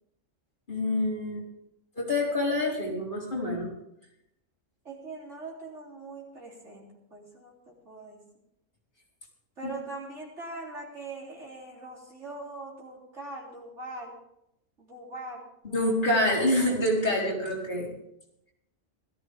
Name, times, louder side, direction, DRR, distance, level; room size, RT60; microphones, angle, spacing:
voice 1, 0.7-1.4 2.0-3.7 15.7-17.9, left 1 dB, 40° left, -5 dB, 4.5 m, -26 dB
voice 2, 4.8-8.2 9.6-14.2 14.8-16.3, right 2 dB, 60° right, -3 dB, 3.8 m, -42 dB
17.0 x 14.0 x 3.6 m, 0.82 s
omnidirectional pair, 1.4 m